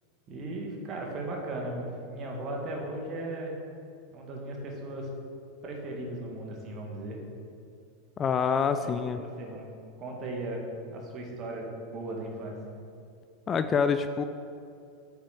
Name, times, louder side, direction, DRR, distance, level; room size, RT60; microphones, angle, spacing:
voice 1, 0.3-3.6 4.1-5.1 5.6-7.2 8.8-9.7 10.0-12.6, right 1 dB, 35° right, 0 dB, 1.9 m, -37 dB
voice 2, 8.2-9.2 13.5-14.2, left 6 dB, 25° left, 9 dB, 0.3 m, -26 dB
8.3 x 6.0 x 6.0 m, 2.5 s
figure-of-eight pair, 85°, 0 cm